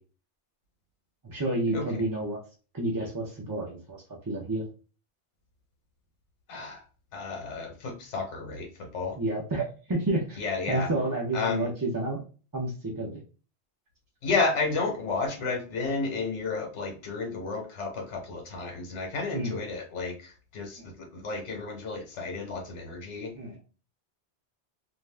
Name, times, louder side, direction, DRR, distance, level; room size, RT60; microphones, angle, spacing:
voice 1, 1.2-2.4 2.7-4.0 4.3-4.6 9.2-10.4 10.7-12.2 12.5-13.2 19.3-19.6 20.8-20.9 23.3-23.6, right 2 dB, 30° right, -3 dB, 0.4 m, -30 dB
voice 2, 6.5-6.8 7.1-9.2 10.4-10.9 11.3-11.7 14.2-23.3, left 4 dB, 85° left, 2 dB, 1.1 m, -32 dB
2.5 x 2.2 x 3.2 m, 0.35 s
omnidirectional pair, 1.2 m